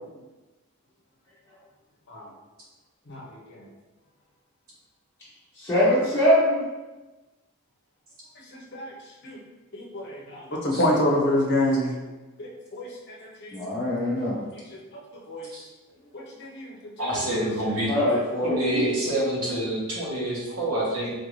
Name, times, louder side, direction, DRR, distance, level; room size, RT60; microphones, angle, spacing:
voice 1, 3.1-3.6 8.5-8.9 9.2-9.4 9.7-11.9 12.4-13.6 14.7-14.8 15.3-15.5 16.1-16.8, left 1 dB, 50° left, -2 dB, 0.7 m, -27 dB
voice 2, 5.6-6.7 13.5-14.4 17.9-18.8, left 1 dB, 10° left, -11 dB, 0.8 m, -22 dB
voice 3, 17.0-17.9 18.4-21.1, right 1 dB, 70° right, -5 dB, 1.1 m, -27 dB
3.8 x 2.6 x 3.0 m, 1.1 s
head